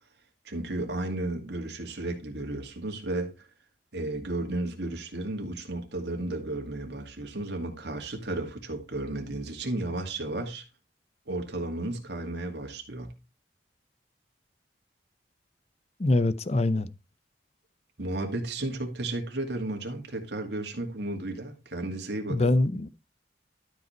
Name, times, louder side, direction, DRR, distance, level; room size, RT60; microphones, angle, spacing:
voice 1, 0.4-3.5 3.9-10.7 11.3-13.2 18.0-22.4, right 2 dB, 75° right, 2.4 m, -33 dB
voice 2, 16.0-16.9 22.3-22.9, left 2 dB, 35° left, 0.6 m, -24 dB
12.5 x 5.4 x 4.4 m
head